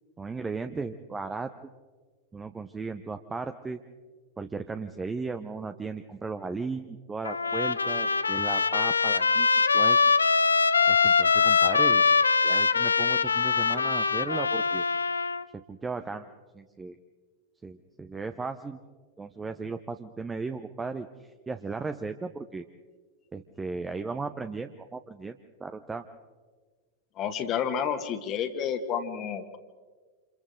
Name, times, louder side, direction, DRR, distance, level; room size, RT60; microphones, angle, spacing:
voice 1, 0.2-1.5 2.3-3.8 4.4-9.5 9.7-10.0 10.9-12.0 12.4-14.8 15.5-16.3 16.5-17.0 17.6-18.8 19.2-22.6 23.3-26.1, right 4 dB, 15° right, 8 dB, 0.8 m, -36 dB
Trumpet, 7.3-15.4, left 5 dB, 75° left, 0.6 m, -23 dB
voice 2, 27.2-29.6, left 8 dB, 35° left, 7 dB, 1.7 m, -30 dB
29.0 x 27.5 x 3.8 m, 1.4 s
figure-of-eight pair, 90°, 0 cm